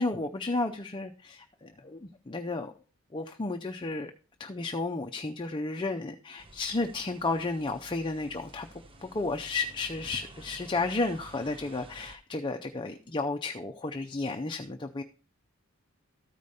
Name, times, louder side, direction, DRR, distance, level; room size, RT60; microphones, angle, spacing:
voice 1, 0.0-2.7 3.1-4.1 4.4-8.7 9.0-15.0, left 3 dB, 25° left, 5 dB, 0.5 m, -32 dB
sound 1, 6.4-12.2, right 1 dB, 25° right, 0.8 m, -52 dB
13.0 x 5.0 x 4.1 m, 0.38 s
head